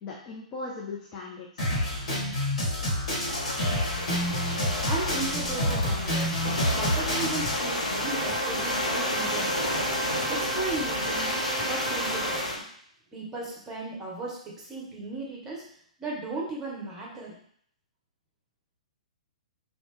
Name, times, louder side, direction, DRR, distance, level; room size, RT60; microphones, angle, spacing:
voice 1, 0.0-1.7, left 3 dB, 25° left, -3 dB, 0.4 m, -38 dB
Drum kit, 1.6-7.6, left 1 dB, 55° left, 1.1 m, -28 dB
sound 1, 3.2-12.6, left 1 dB, 75° left, 0.6 m, -31 dB
voice 2, 4.9-12.6 13.1-15.7 16.0-17.4, right 2 dB, 15° right, -4 dB, 0.9 m, -36 dB
sound 2, 8.0-12.4, right 6 dB, 30° right, 0.4 m, -36 dB
2.8 x 2.0 x 3.2 m, 0.64 s
figure-of-eight pair, 115°, 4 cm